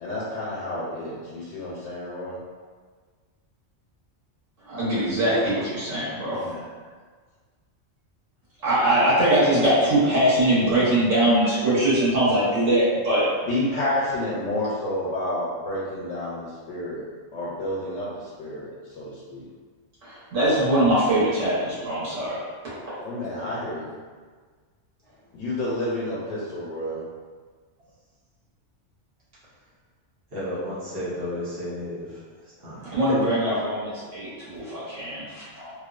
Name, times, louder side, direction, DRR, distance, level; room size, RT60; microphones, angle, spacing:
voice 1, 0.0-2.4 6.3-6.7 13.5-17.0 17.3-19.4 23.0-23.9 25.3-27.0, left 1 dB, 90° left, -7 dB, 0.9 m, -30 dB
voice 2, 4.6-6.4 8.6-13.3 20.0-22.4 22.9-23.0 23.4-23.5 32.8-35.7, right 1 dB, 90° right, -10 dB, 1.3 m, -22 dB
voice 3, 30.3-32.1 32.6-33.0, left 1 dB, 55° right, -10 dB, 1.0 m, -32 dB
2.8 x 2.0 x 2.3 m, 1.6 s
omnidirectional pair, 1.2 m